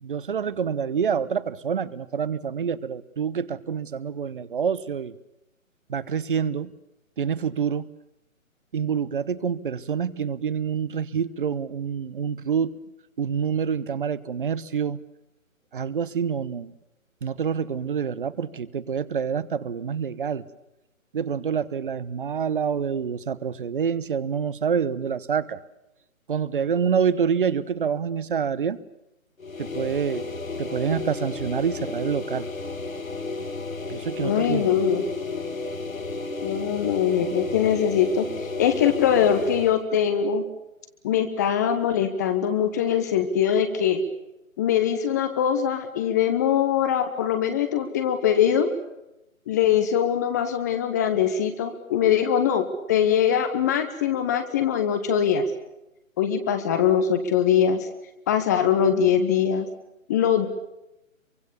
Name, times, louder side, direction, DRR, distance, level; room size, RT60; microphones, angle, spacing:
voice 1, 0.0-5.2 5.9-6.7 7.2-7.9 8.7-12.7 13.2-15.0 15.7-16.7 17.2-20.5 21.1-25.6 26.3-28.8 29.6-30.3 30.6-32.5 33.9-34.7, right 7 dB, 40° right, 18 dB, 1.1 m, -27 dB
sound 1, 29.4-39.8, left 3 dB, 75° left, 2.2 m, -33 dB
voice 2, 34.2-35.1 36.4-40.4 41.0-44.0 44.6-48.7 49.5-55.4 56.2-57.9 58.3-59.7 60.1-60.5, left 8 dB, 15° left, 8 dB, 0.9 m, -22 dB
26.0 x 24.0 x 7.0 m, 0.91 s
figure-of-eight pair, 140°, 41 cm